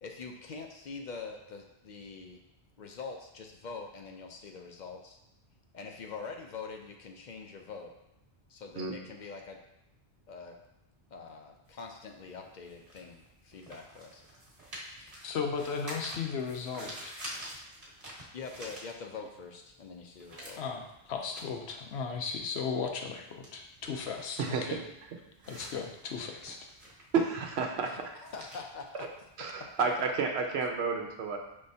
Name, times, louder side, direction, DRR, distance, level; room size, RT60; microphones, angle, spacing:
voice 1, 0.0-2.4 2.8-5.2 5.7-7.9 8.5-9.6 10.3-10.6 11.1-14.2 15.0-15.2 18.3-20.6 27.8-29.1, left 4 dB, 55° left, 3 dB, 0.6 m, -44 dB
sound 1, 11.7-19.4 19.8-29.8, equal, 40° right, 1.1 m, -48 dB
voice 2, 15.2-17.2 20.4-24.8 25.5-26.7, left 5 dB, 85° left, 3 dB, 0.9 m, -36 dB
voice 3, 27.1-27.9 29.4-31.4, right 5 dB, 85° right, 3 dB, 0.9 m, -30 dB
5.4 x 3.2 x 2.7 m, 0.87 s
omnidirectional pair, 1.1 m